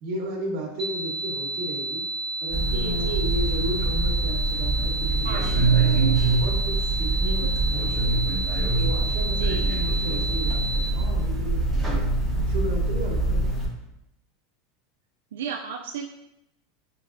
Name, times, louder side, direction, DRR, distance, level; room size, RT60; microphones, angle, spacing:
voice 1, 0.0-2.0 2.4-8.2 8.7-12.1 12.5-13.7, right 1 dB, 55° right, 0 dB, 1.0 m, -34 dB
sound 1, 0.8-10.8, right 2 dB, 30° right, 0.8 m, -31 dB
sound 2, 2.5-13.7, right 3 dB, ahead, 0.9 m, -24 dB
voice 2, 2.7-3.3 5.2-5.5 7.1-7.5 9.3-9.7 15.3-16.0, right 7 dB, 85° right, 2 dB, 0.3 m, -34 dB
4.5 x 2.9 x 2.6 m, 0.85 s
supercardioid pair, 130°, 0 cm